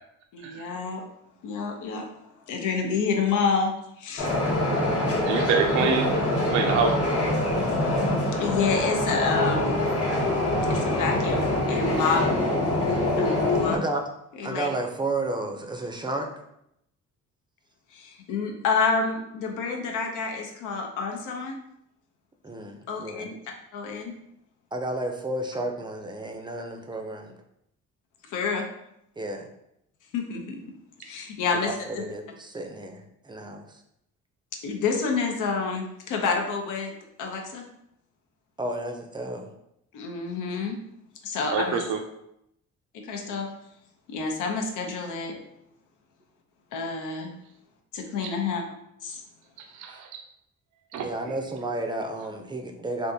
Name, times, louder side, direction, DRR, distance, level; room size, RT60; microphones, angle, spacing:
voice 1, 0.3-1.0 1.4-2.1 2.5-3.7 4.0-4.3 8.4-9.8 10.7-12.2 13.2-13.8 14.4-14.7 17.9-21.6 22.9-23.4 23.7-24.1 28.3-28.7 30.1-30.6 31.0-32.0 34.6-36.9 37.2-37.7 39.9-40.8 41.2-41.8 43.0-43.5 44.1-45.4 46.7-47.3 47.9-48.6 49.0-49.2, left 5 dB, 90° left, 2 dB, 0.7 m, -28 dB
sound 1, 4.2-13.8, left 1 dB, 50° left, 0.8 m, -24 dB
voice 2, 5.3-6.0 6.5-6.9 41.5-42.0 48.2-48.3 49.7-50.1 50.9-51.1, right 6 dB, 70° right, 4 dB, 0.4 m, -25 dB
voice 3, 13.7-14.0 14.4-16.3 22.4-23.3 24.7-27.3 29.2-29.5 31.5-33.8 38.6-39.5 49.9-50.0 51.0-53.1, right 2 dB, 15° right, 4 dB, 0.4 m, -32 dB
3.5 x 2.5 x 2.7 m, 0.78 s
cardioid pair, 90°, 30 cm